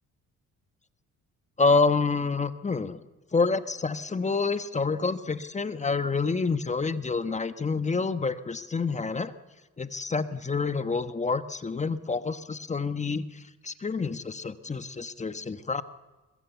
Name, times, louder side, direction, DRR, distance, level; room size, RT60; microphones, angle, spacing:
voice 1, 1.6-3.0 3.3-9.3 9.8-15.8, left 4 dB, 25° left, 11 dB, 1.1 m, -28 dB
22.5 x 21.0 x 8.1 m, 1.2 s
cardioid pair, 90°, 30 cm